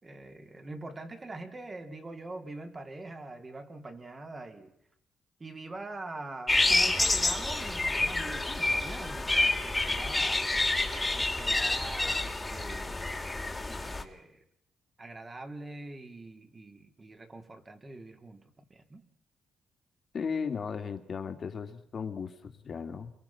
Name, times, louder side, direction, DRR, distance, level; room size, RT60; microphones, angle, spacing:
voice 1, 0.0-4.7 5.4-10.4 11.1-13.1 13.8-14.4 15.0-19.0, right 2 dB, 25° right, 3.5 m, -44 dB
sound 1, 6.5-14.0, left 2 dB, 15° left, 2.6 m, -28 dB
voice 2, 20.1-23.1, left 6 dB, 45° left, 2.5 m, -36 dB
28.5 x 23.0 x 5.9 m
cardioid pair, 90°, 0 cm